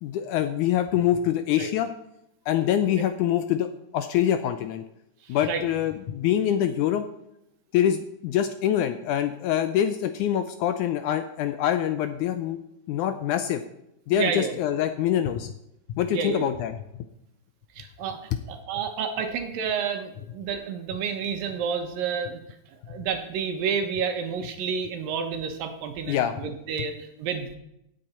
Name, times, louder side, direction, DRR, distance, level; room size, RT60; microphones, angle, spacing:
voice 1, 0.0-1.9 2.5-3.7 3.9-4.8 5.3-7.1 7.7-12.6 12.9-13.6 14.1-15.5 15.9-16.8 26.1-26.3, left 10 dB, 85° left, 9 dB, 1.8 m, -25 dB
voice 2, 5.2-5.6 14.1-14.6 16.1-16.5 17.8-22.4 22.9-27.6, right 6 dB, 80° right, 6 dB, 2.9 m, -30 dB
17.0 x 7.8 x 4.3 m, 0.81 s
omnidirectional pair, 4.0 m